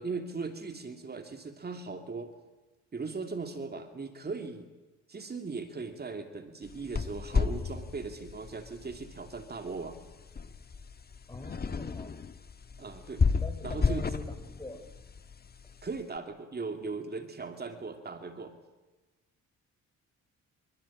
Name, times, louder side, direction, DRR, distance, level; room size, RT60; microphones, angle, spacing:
voice 1, 0.0-2.3 2.9-4.7 5.1-10.0 12.8-13.2 13.6-14.1 15.8-18.6, right 4 dB, 30° right, 6 dB, 2.7 m, -38 dB
sound 1, 6.6-16.0, left 5 dB, 30° left, 1.5 m, -33 dB
voice 2, 11.3-12.2 13.4-14.8, left 2 dB, 15° left, 10 dB, 4.3 m, -44 dB
26.5 x 24.5 x 8.8 m, 1.1 s
cardioid pair, 90°, 30 cm